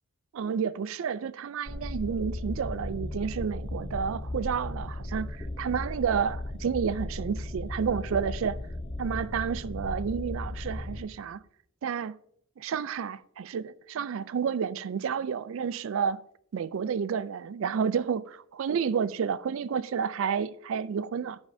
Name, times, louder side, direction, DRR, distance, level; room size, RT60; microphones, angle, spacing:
voice 1, 0.3-8.6 9.0-11.4 11.8-12.2 12.6-16.2 16.5-21.4, right 6 dB, 60° right, 0.3 m, -30 dB
sound 1, 1.7-11.0, left 1 dB, 25° left, 0.6 m, -36 dB
10.5 x 8.0 x 2.7 m
head